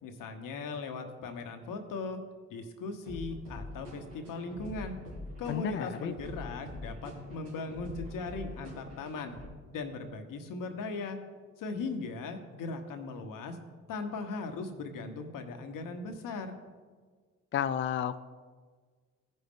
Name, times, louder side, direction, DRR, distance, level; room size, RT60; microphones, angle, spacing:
voice 1, 0.0-2.2 2.5-5.0 5.4-9.3 9.7-11.2 11.6-13.6 13.9-16.5, left 3 dB, 70° left, 6 dB, 1.1 m, -38 dB
sound 1, 3.1-9.5, left 1 dB, 80° right, 2.7 m, -44 dB
voice 2, 5.5-6.1 17.5-18.2, left 9 dB, 35° left, 11 dB, 0.4 m, -31 dB
15.5 x 5.2 x 3.7 m, 1.5 s
hypercardioid pair, 50°, 34 cm